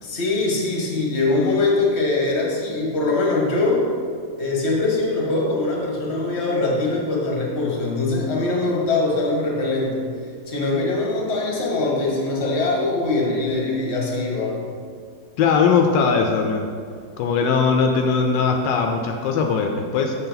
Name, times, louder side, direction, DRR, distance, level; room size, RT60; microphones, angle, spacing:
voice 1, 0.0-3.9 4.4-10.1 10.5-14.6, left 2 dB, 40° left, -2 dB, 1.6 m, -22 dB
voice 2, 15.4-16.7 17.2-20.1, left 5 dB, 80° left, 3 dB, 1.3 m, -20 dB
6.8 x 6.8 x 3.9 m, 2.1 s
omnidirectional pair, 2.0 m